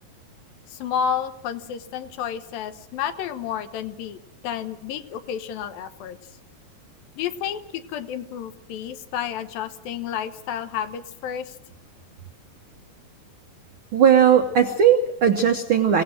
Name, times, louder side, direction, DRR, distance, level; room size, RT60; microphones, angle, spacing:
voice 1, 0.7-4.2 4.4-6.2 7.2-11.5 14.6-14.8, left 8 dB, 85° left, 9 dB, 2.9 m, -31 dB
voice 2, 13.9-16.0, right 8 dB, 90° right, 5 dB, 1.1 m, -17 dB
25.0 x 17.5 x 6.4 m, 0.81 s
omnidirectional pair, 4.0 m